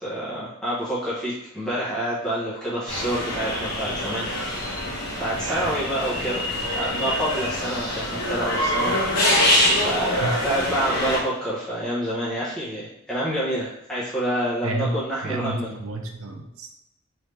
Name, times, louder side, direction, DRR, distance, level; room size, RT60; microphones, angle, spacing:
voice 1, 0.0-4.3 5.2-6.5 6.7-15.7, right 1 dB, 5° left, -10 dB, 0.9 m, -28 dB
sound 1, 2.9-11.2, left 1 dB, 50° left, 1.2 m, -25 dB
voice 2, 5.3-5.8 6.1-6.3 10.2-10.5 14.6-14.9 15.2-16.7, right 2 dB, 90° right, 3 dB, 0.6 m, -30 dB
3.3 x 2.7 x 3.2 m, 0.87 s
head